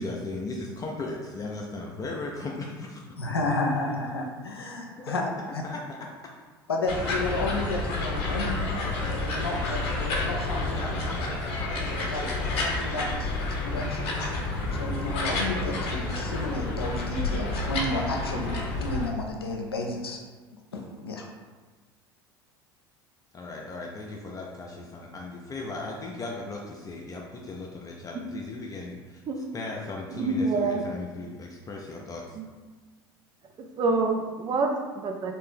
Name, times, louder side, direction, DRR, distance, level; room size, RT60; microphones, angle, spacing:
voice 1, 0.0-3.0 5.6-6.0 10.6-12.1 23.3-29.2 29.5-32.4, left 2 dB, 30° left, -1 dB, 0.5 m, -37 dB
voice 2, 3.2-5.2 5.5-5.6 6.7-10.8 12.1-13.3 13.6-14.1 14.7-20.2 20.7-21.3, left 2 dB, 85° left, 2 dB, 0.5 m, -32 dB
sound 1, 6.9-19.1, left 2 dB, 55° left, 0.9 m, -29 dB
voice 3, 30.1-30.8 32.4-32.5 33.6-35.4, right 3 dB, 35° right, 4 dB, 0.5 m, -27 dB
3.3 x 2.7 x 3.5 m, 1.4 s
figure-of-eight pair, 70°, 12 cm